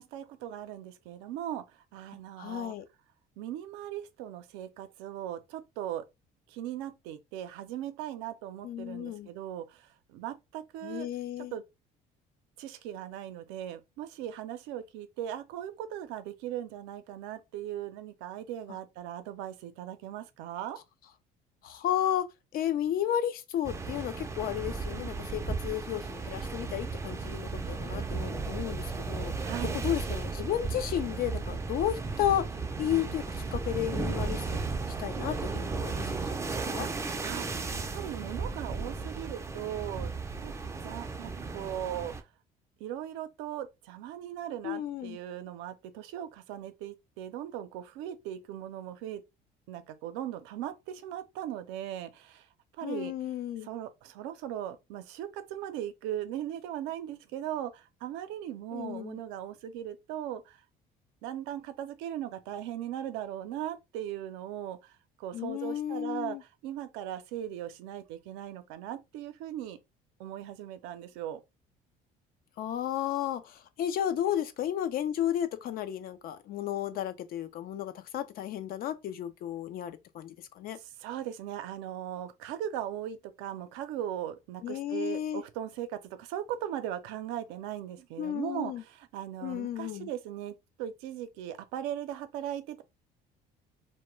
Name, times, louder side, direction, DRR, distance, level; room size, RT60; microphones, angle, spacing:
voice 1, 0.0-1.6 1.9-2.7 3.4-6.0 6.5-11.1 11.5-11.6 12.6-20.8 29.4-29.8 36.8-36.9 37.2-40.1 40.4-40.5 40.8-42.1 42.8-49.2 49.7-52.5 52.8-53.1 53.6-60.6 61.2-64.9 65.2-69.8 70.2-71.4 81.0-92.8, right 11 dB, 90° right, 0.5 m, -38 dB
voice 2, 2.4-2.9 8.6-9.3 10.8-11.6 18.7-18.8 21.6-22.3 22.5-29.3 29.7-32.5 32.8-34.7 35.0-36.4 36.6-36.9 44.6-45.2 52.8-53.7 58.7-59.2 65.3-66.4 72.6-80.8 84.6-85.4 88.2-88.8 89.4-90.1, left 11 dB, 55° left, 0.4 m, -33 dB
sound 1, 23.6-42.2, right 4 dB, 15° right, 0.4 m, -35 dB
2.2 x 2.1 x 3.0 m
cardioid pair, 105°, 18 cm